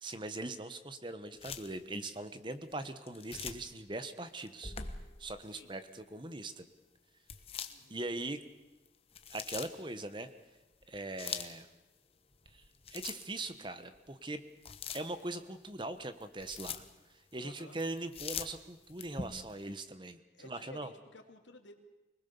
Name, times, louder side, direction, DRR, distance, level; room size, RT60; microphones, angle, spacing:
voice 1, 0.0-4.7 5.2-6.7 7.9-8.4 9.3-10.3 10.9-11.7 12.5-12.6 12.9-14.4 14.9-16.8 17.3-20.9, right 2 dB, 25° right, 11 dB, 1.2 m, -41 dB
sound 1, 1.4-1.7 3.1-3.8 4.5-5.4 7.3-8.2 8.9-9.8 10.8-11.6 12.3-13.5 13.9-14.0 14.6-15.3 16.0-16.9 17.8-19.5, left 6 dB, 30° left, 1.2 m, -43 dB
voice 2, 5.4-5.7 7.7-8.0 17.4-17.8 20.3-21.7, left 2 dB, 90° left, 5 dB, 2.8 m, -55 dB
25.5 x 20.0 x 7.0 m, 1.1 s
head